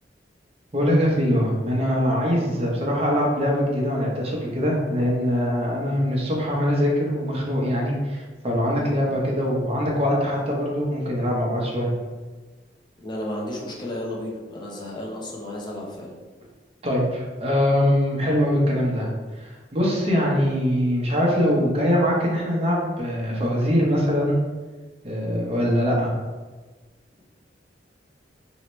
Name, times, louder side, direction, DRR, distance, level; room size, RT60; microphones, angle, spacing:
voice 1, 0.7-11.9 16.8-19.1 19.4-24.4 25.0-26.1, equal, 35° right, -2 dB, 0.7 m, -22 dB
voice 2, 13.0-16.1, left 1 dB, 25° left, -3 dB, 0.7 m, -33 dB
3.1 x 2.8 x 3.0 m, 1.3 s
head